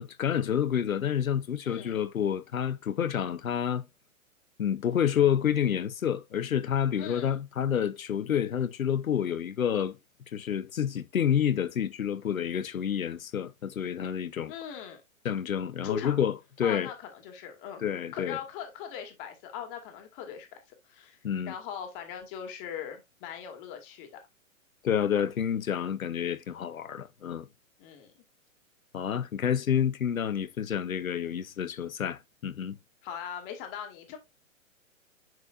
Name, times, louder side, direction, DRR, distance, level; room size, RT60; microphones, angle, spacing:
voice 1, 0.0-3.8 4.6-10.0 10.3-14.5 15.2-16.9 17.8-18.4 21.2-21.5 24.8-27.5 28.9-32.8, left 9 dB, 85° left, 0.9 m, -29 dB
voice 2, 1.6-2.0 7.0-7.4 14.5-15.0 15.8-16.2 16.6-17.8 18.1-20.6 20.8-24.2 27.8-28.1 33.0-34.2, left 8 dB, 40° left, 2.4 m, -40 dB
10.5 x 4.3 x 2.5 m
hypercardioid pair, 125°, 41 cm